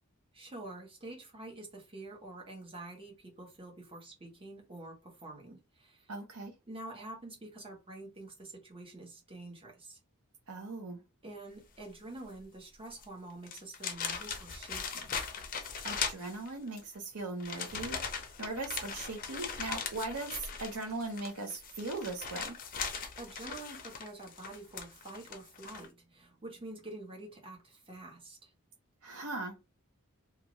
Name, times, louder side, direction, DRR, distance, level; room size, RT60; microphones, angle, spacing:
voice 1, 0.3-6.1 6.7-10.0 11.2-15.2 23.2-28.5, right 2 dB, 25° right, 1.0 m, -47 dB
voice 2, 6.1-6.5 10.5-11.0 15.8-18.0 18.4-22.6 29.0-29.7, right 3 dB, 80° right, 0.8 m, -39 dB
sound 1, 12.9-13.0 13.4-16.8 17.4-25.9, left 6 dB, 40° left, 0.5 m, -39 dB
2.5 x 2.4 x 3.0 m
head